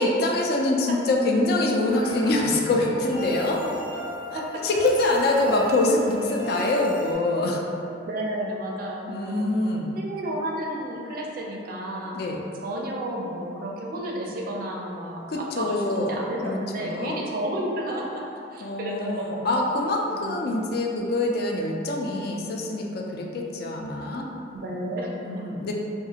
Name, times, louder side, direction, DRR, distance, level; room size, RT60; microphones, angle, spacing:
voice 1, 0.0-3.6 4.6-7.6 9.1-9.9 12.1-12.4 15.3-16.1 16.4-17.2 18.6-24.2 24.8-25.7, left 2 dB, 55° left, 0 dB, 0.3 m, -25 dB
sound 1, 1.9-7.1, left 1 dB, 85° left, 0.7 m, -35 dB
voice 2, 8.0-9.5 9.9-12.2 12.6-18.2 18.5-19.6 20.1-20.5 24.5-25.4, right 1 dB, 50° right, -2 dB, 0.4 m, -32 dB
2.8 x 2.4 x 2.7 m, 2.8 s
head